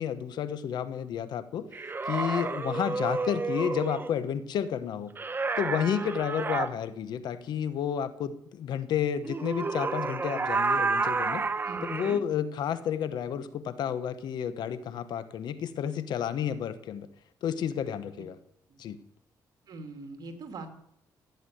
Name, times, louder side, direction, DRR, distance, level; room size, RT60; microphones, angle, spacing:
voice 1, 0.0-1.7 2.0-5.1 5.6-11.4 11.9-17.1 17.4-18.4 18.8-19.0, left 8 dB, 75° left, 13 dB, 1.1 m, -31 dB
sound 1, 1.7-4.1 5.2-6.7 9.2-12.2, right 4 dB, 30° right, 0.9 m, -30 dB
voice 2, 11.6-12.2 18.7-18.8 19.6-20.7, right 3 dB, 60° right, 5 dB, 2.7 m, -42 dB
15.0 x 9.6 x 7.9 m, 0.72 s
cardioid pair, 100°, 7 cm